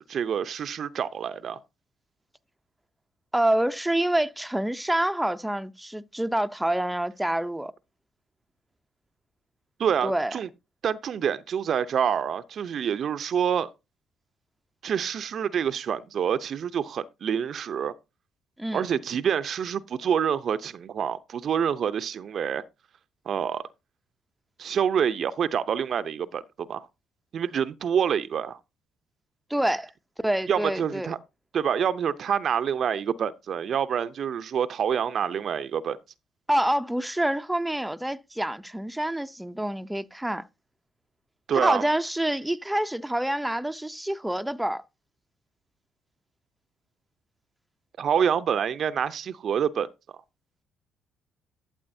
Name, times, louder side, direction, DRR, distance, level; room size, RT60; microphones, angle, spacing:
voice 1, 0.1-1.6 9.8-10.5 10.8-13.7 14.8-17.9 18.7-22.6 23.3-23.6 24.6-26.9 27.3-28.6 30.5-31.2 31.5-36.0 41.5-41.8 48.0-49.9, right 8 dB, 55° right, 0.6 m, -27 dB
voice 2, 3.3-7.7 10.0-10.3 18.6-18.8 29.5-29.9 30.2-31.1 36.5-40.5 41.5-44.8, right 1 dB, 5° right, 0.6 m, -27 dB
12.5 x 7.4 x 2.7 m
hypercardioid pair, 55°, 0 cm